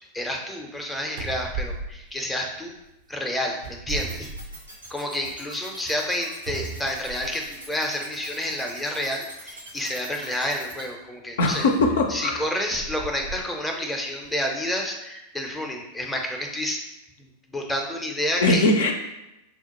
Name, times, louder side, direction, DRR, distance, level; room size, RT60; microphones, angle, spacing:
voice 1, 0.1-2.7 3.1-4.3 4.9-11.7 12.1-16.8 17.2-18.6, left 1 dB, 5° left, 1 dB, 0.5 m, -29 dB
sound 1, 0.8-0.9 1.2-2.9 3.5-5.0 5.4-5.5 6.5-7.6 8.5-8.6 11.8-13.4 14.1-14.3, right 3 dB, 50° right, 0.4 m, -36 dB
sound 2, 3.9-10.8, right 2 dB, 85° right, 0.8 m, -42 dB
voice 2, 11.4-12.4 18.4-18.9, left 2 dB, 60° left, 3 dB, 0.4 m, -20 dB
4.3 x 2.0 x 2.9 m, 0.92 s
figure-of-eight pair, 90°, 0 cm